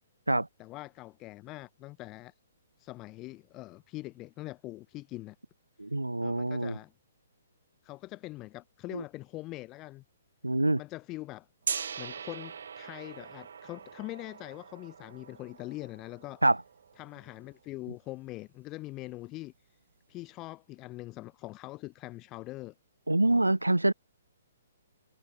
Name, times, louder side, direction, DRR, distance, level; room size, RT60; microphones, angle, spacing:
voice 1, 0.6-2.3 2.8-5.3 6.2-6.9 7.8-10.0 10.8-11.5 12.0-16.4 17.0-19.5 20.1-22.7, left 19 dB, 25° left, 3.3 m, -43 dB
voice 2, 5.8-6.7 10.4-10.8 16.4-16.6 23.1-23.9, right 2 dB, 80° right, 0.4 m, -25 dB
Gong, 11.6-17.6, right 7 dB, 55° right, 1.5 m, -41 dB
figure-of-eight pair, 125°, 0 cm